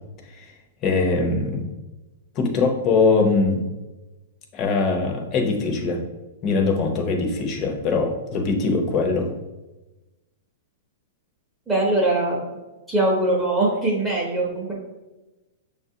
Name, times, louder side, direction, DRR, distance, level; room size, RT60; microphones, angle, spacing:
voice 1, 0.8-1.7 2.3-3.6 4.5-6.0 6.4-9.3, left 4 dB, 30° left, 2 dB, 0.7 m, -22 dB
voice 2, 11.7-12.4 12.9-14.7, right 2 dB, 10° right, -5 dB, 0.8 m, -22 dB
6.4 x 2.4 x 2.7 m, 1.1 s
hypercardioid pair, 155°, 0 cm